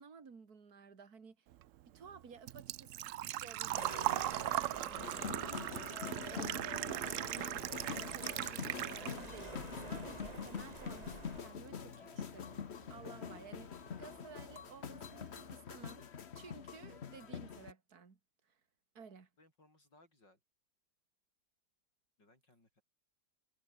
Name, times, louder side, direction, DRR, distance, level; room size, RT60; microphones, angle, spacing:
voice 1, 0.0-1.5 1.9-3.1 3.4-6.0 6.3-16.0 16.3-18.2 18.4-18.6 18.9-19.3, right 5 dB, 55° right, 3.0 m, -55 dB
Engine / Trickle dribble / Fill (with liquid), 1.5-9.5 9.8-10.8 11.1-11.2 13.1-13.2 13.3-13.7 14.1-14.2 14.4-14.5, right 14 dB, 85° right, 0.7 m, -39 dB
sound 1, 3.7-11.4, right 3 dB, 20° right, 1.8 m, -49 dB
sound 2, 5.0-17.7, left 7 dB, 45° left, 1.2 m, -45 dB
voice 2, 19.4-20.4 22.2-22.8, left 2 dB, 75° left, 8.9 m, -66 dB
omnidirectional pair, 1.9 m